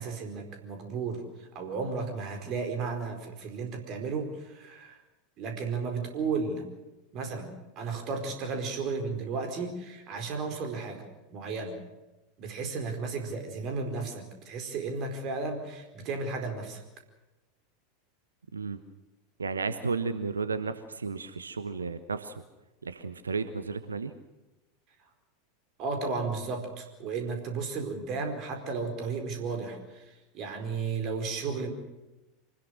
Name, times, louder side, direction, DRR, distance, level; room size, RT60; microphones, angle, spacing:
voice 1, 0.0-5.0 5.4-6.7 7.1-11.8 12.4-16.8 25.8-31.7, right 4 dB, 40° right, 5 dB, 4.6 m, -34 dB
voice 2, 19.4-22.4 22.8-24.1, right 4 dB, 80° right, 12 dB, 1.1 m, -33 dB
25.5 x 20.0 x 6.5 m, 1.0 s
figure-of-eight pair, 85°, 0 cm